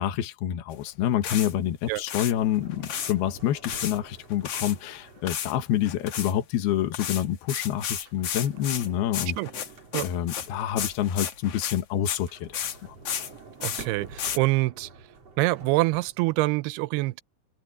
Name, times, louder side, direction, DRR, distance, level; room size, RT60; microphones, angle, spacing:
voice 1, 0.0-9.4 10.0-13.0, left 11 dB, 75° left, 3.4 m, -27 dB
sound 1, 0.7-0.8 1.2-1.5 1.9-2.3 2.7-3.1 3.6-4.8 5.3-5.6 5.8-6.3 6.9-12.3 12.5-12.8 13.1-13.3 13.6-13.9 14.2-14.4, left 8 dB, 55° left, 1.8 m, -32 dB
Sliding door, 2.3-5.8 7.9-11.4 12.0-16.4, right 4 dB, 40° right, 5.2 m, -48 dB
voice 2, 13.6-14.9 15.4-17.2, right 20 dB, 85° right, 2.5 m, -25 dB
omnidirectional pair, 4.7 m